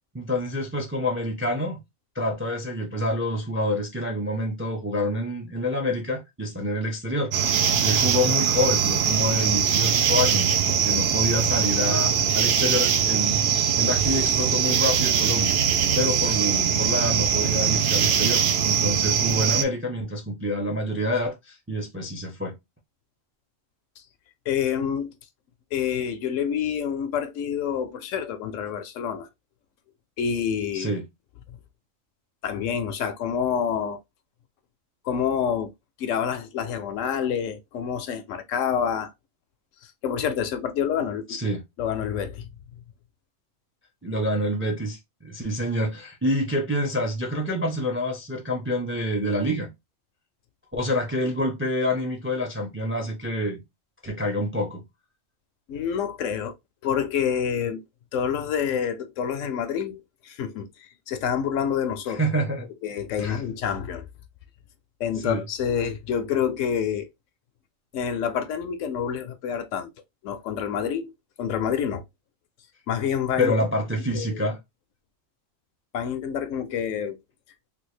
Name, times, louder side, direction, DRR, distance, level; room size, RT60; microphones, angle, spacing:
voice 1, 0.1-1.8 2.1-15.6 15.9-22.5 30.7-31.0 41.3-41.6 44.0-49.7 50.7-53.6 54.0-54.8 62.1-62.7 63.2-63.4 65.2-65.4 73.4-74.6, left 1 dB, 15° right, 0.4 m, -27 dB
sound 1, 7.3-19.6, right 7 dB, 60° right, 0.7 m, -22 dB
voice 2, 24.5-25.1 25.7-29.3 30.2-30.9 32.4-34.0 35.0-35.7 36.0-39.1 39.8-41.4 41.8-42.5 55.7-56.5 56.8-57.8 58.1-62.2 62.8-64.1 65.0-67.1 67.9-69.9 70.2-71.1 71.4-72.0 72.9-73.5 74.1-74.4 75.9-77.2, left 8 dB, 75° left, 0.9 m, -27 dB
3.4 x 2.4 x 3.0 m
omnidirectional pair, 1.4 m